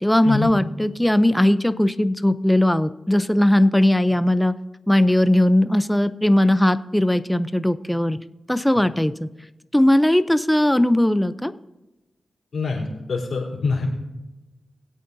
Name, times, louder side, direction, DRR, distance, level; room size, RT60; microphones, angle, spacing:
voice 1, 0.0-4.5 4.9-8.2 8.5-9.3 9.7-11.5, left 1 dB, 5° left, 12 dB, 0.6 m, -18 dB
voice 2, 12.5-13.9, left 4 dB, 70° left, -4 dB, 4.0 m, -25 dB
21.0 x 8.4 x 2.8 m, 1.0 s
cardioid pair, 55°, 0 cm